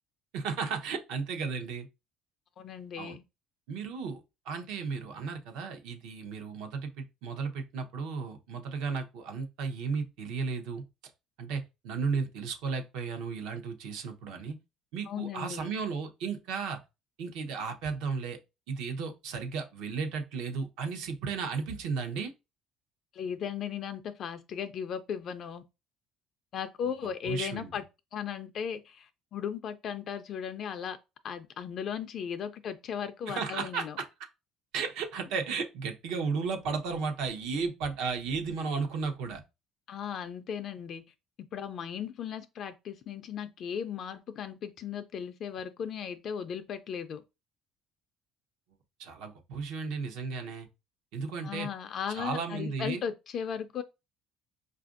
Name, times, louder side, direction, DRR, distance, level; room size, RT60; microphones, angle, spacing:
voice 1, 0.3-1.9 3.0-3.2 3.7-4.2 4.5-10.8 11.4-14.5 14.9-16.8 17.2-18.4 18.7-22.3 27.2-27.8 33.3-34.1 34.7-39.4 49.0-50.7 51.1-51.7 52.1-53.0, right 5 dB, 80° right, 0.8 m, -34 dB
voice 2, 2.6-3.2 15.1-15.7 23.1-25.6 26.5-27.8 28.1-31.0 31.2-34.0 39.9-41.0 41.5-47.2 51.4-53.8, left 8 dB, 50° left, 0.3 m, -36 dB
5.0 x 2.5 x 2.5 m
cardioid pair, 115°, 0 cm